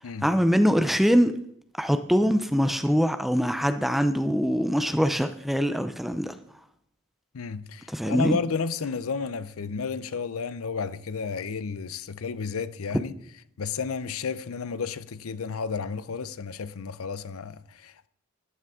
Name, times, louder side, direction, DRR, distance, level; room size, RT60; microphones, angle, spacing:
voice 1, 0.2-1.3 1.8-6.3 7.9-8.4, equal, ahead, 0.5 m, -23 dB
voice 2, 7.3-13.1 13.6-18.1, left 5 dB, 85° left, 0.6 m, -32 dB
13.5 x 9.3 x 3.7 m
head